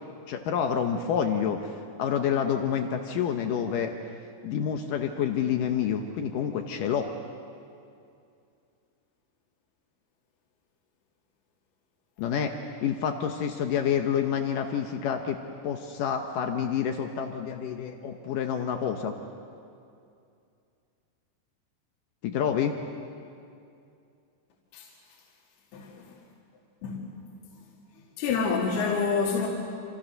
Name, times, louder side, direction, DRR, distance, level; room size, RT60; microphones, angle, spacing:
voice 1, 0.3-3.9 4.4-7.1 12.2-12.5 12.8-15.4 15.6-19.2 22.2-22.7, left 8 dB, 90° left, 5 dB, 1.9 m, -28 dB
voice 2, 25.7-26.1 26.8-27.1 28.2-29.5, left 5 dB, 60° left, -3 dB, 4.0 m, -27 dB
27.5 x 27.5 x 6.5 m, 2.5 s
omnidirectional pair, 5.4 m